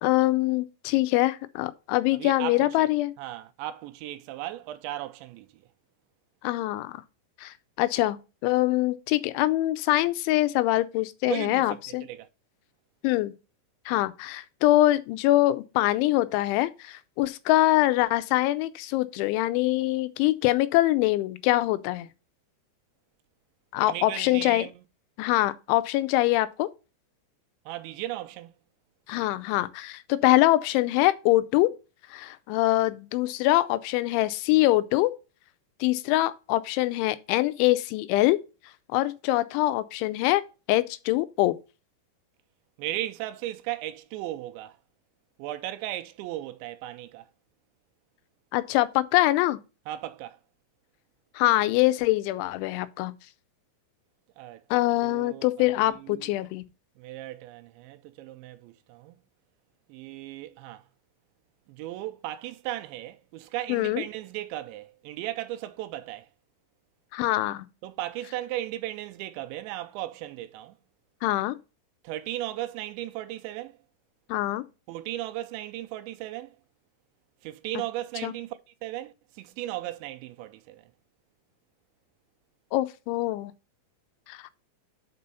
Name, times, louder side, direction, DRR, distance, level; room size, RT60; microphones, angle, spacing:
voice 1, 0.0-3.1 6.4-7.0 7.4-8.2 8.4-12.0 13.0-13.3 13.9-22.1 23.7-24.7 25.2-26.7 29.1-31.7 32.1-35.2 35.8-38.4 38.9-40.4 40.7-41.6 48.5-49.6 51.4-53.1 54.7-56.6 63.7-64.0 67.1-67.7 71.2-71.6 74.3-74.6 78.2-78.3 82.7-83.5 84.3-84.5, left 17 dB, 85° left, 3.0 m, -24 dB
voice 2, 2.1-2.9 3.2-5.5 11.2-12.3 23.9-24.8 27.7-28.6 42.8-44.8 45.4-47.3 49.9-50.4 54.4-54.6 55.0-56.3 57.0-59.2 59.9-60.8 61.7-66.3 67.8-70.8 72.0-73.8 74.9-76.6 77.4-80.8, right 14 dB, 85° right, 2.9 m, -36 dB
6.1 x 5.4 x 5.5 m
omnidirectional pair, 5.3 m